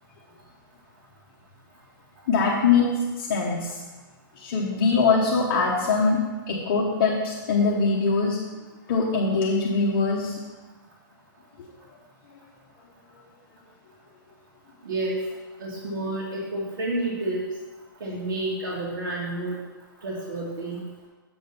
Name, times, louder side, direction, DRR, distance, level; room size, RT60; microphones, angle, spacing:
voice 1, 2.3-3.8 4.4-6.2 6.5-8.4 8.9-10.4, left 4 dB, 35° left, -4 dB, 1.1 m, -22 dB
voice 2, 14.9-15.2 15.6-17.4 18.0-19.6 20.0-20.8, right 2 dB, 80° right, -5 dB, 1.7 m, -29 dB
7.8 x 3.9 x 6.8 m, 1.2 s
hypercardioid pair, 175°, 12 cm